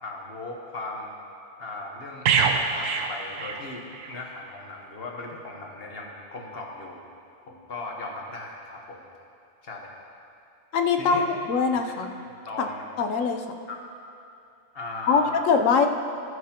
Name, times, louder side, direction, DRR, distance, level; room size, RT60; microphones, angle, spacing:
voice 1, 0.0-1.1 1.6-7.0 7.5-9.1 9.6-9.9 11.0-11.3 11.7-11.9 12.5-12.9 13.7-13.8 14.7-15.4, left 2 dB, 50° left, 0 dB, 1.3 m, -38 dB
sound 1, 2.2-4.1 4.5-4.7, right 5 dB, 85° right, 1.0 m, -25 dB
voice 2, 10.7-12.1 13.0-13.4 15.1-15.9, left 5 dB, 80° left, 5 dB, 1.1 m, -22 dB
18.5 x 6.4 x 2.9 m, 2.6 s
omnidirectional pair, 1.3 m